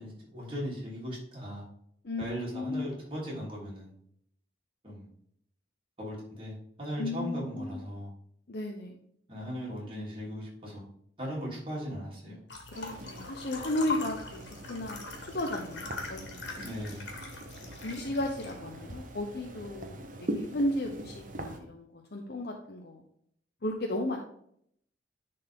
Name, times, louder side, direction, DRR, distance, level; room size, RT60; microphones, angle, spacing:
voice 1, 0.0-1.6 2.2-3.9 4.8-5.1 6.0-8.1 9.3-10.8 11.2-12.4 16.6-17.0, equal, 30° right, -4 dB, 3.1 m, -38 dB
voice 2, 2.5-2.9 7.0-7.8 8.5-9.0 12.7-14.4 14.7-16.7 17.7-23.0 23.6-24.2, left 1 dB, 60° left, 1 dB, 0.8 m, -34 dB
sound 1, 12.5-18.5, left 3 dB, 80° left, 1.9 m, -41 dB
sound 2, 12.7-21.6, right 1 dB, 45° right, 1.0 m, -42 dB
10.0 x 4.2 x 3.7 m, 0.68 s
head